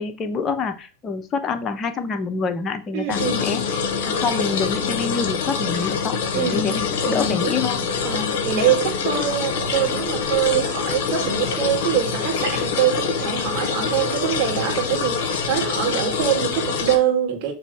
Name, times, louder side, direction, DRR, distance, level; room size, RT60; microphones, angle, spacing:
voice 1, 0.0-3.6 4.0-7.8, left 4 dB, 25° left, 1.0 m, -26 dB
voice 2, 2.9-3.5 6.3-7.5 8.0-17.5, right 9 dB, 40° right, 2.0 m, -24 dB
sound 1, 3.1-17.0, left 5 dB, 55° left, 1.1 m, -25 dB
6.8 x 3.1 x 5.6 m
figure-of-eight pair, 90°, 0 cm